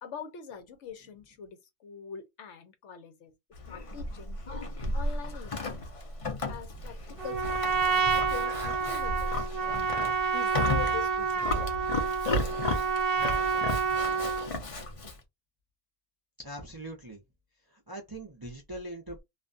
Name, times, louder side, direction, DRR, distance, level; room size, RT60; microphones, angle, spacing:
voice 1, 0.0-3.3 3.7-4.4 4.9-6.0 6.5-7.0 7.2-7.8 8.1-9.8 10.3-11.9, left 7 dB, 70° left, 1.0 m, -43 dB
Livestock farm animals working animals, 3.5-15.2, left 2 dB, 40° left, 0.5 m, -34 dB
Trumpet, 7.2-14.5, right 6 dB, 55° right, 0.9 m, -29 dB
voice 2, 16.4-17.2 17.7-19.2, right 1 dB, 25° right, 0.5 m, -42 dB
2.5 x 2.2 x 2.5 m
omnidirectional pair, 1.3 m